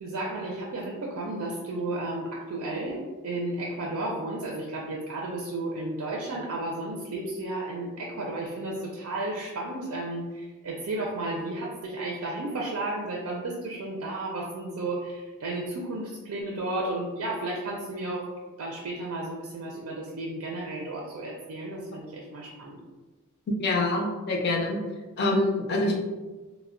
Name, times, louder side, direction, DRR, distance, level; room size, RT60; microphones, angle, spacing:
voice 1, 0.0-18.3 18.6-22.8, right 2 dB, 85° right, -2 dB, 0.4 m, -33 dB
voice 2, 23.6-24.8 25.2-26.0, left 2 dB, 45° left, 0 dB, 0.4 m, -25 dB
2.1 x 2.0 x 3.5 m, 1.2 s
head